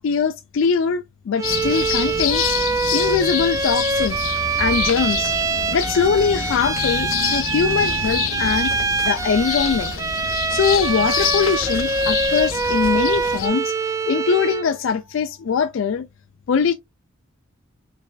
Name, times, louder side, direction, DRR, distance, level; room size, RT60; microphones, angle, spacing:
voice 1, 0.0-2.4 2.9-4.2 4.6-5.3 5.7-9.9 10.5-16.1 16.5-16.7, left 6 dB, 65° left, 0.4 m, -22 dB
sound 1, 1.4-13.5, left 7 dB, 85° left, 0.9 m, -27 dB
Bowed string instrument, 1.4-14.7, right 4 dB, 15° right, 0.3 m, -24 dB
4.6 x 3.2 x 2.3 m
head